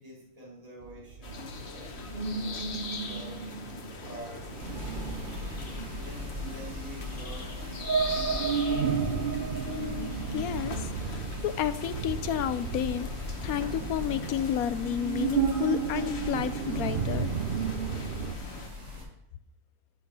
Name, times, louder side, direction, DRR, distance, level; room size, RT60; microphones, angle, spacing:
voice 1, 0.0-8.5 18.5-19.2, right 1 dB, 25° right, -6 dB, 3.3 m, -48 dB
sound 1, 0.8-18.3, right 7 dB, 55° right, 0.6 m, -33 dB
sound 2, 1.2-18.7, left 4 dB, 45° left, 1.3 m, -42 dB
sound 3, 4.6-19.0, left 2 dB, 80° right, 5.7 m, -40 dB
voice 2, 9.7-13.1 13.4-17.3, left 10 dB, 75° left, 13 dB, 1.0 m, -31 dB
11.0 x 6.4 x 5.4 m, 0.79 s
omnidirectional pair, 1.6 m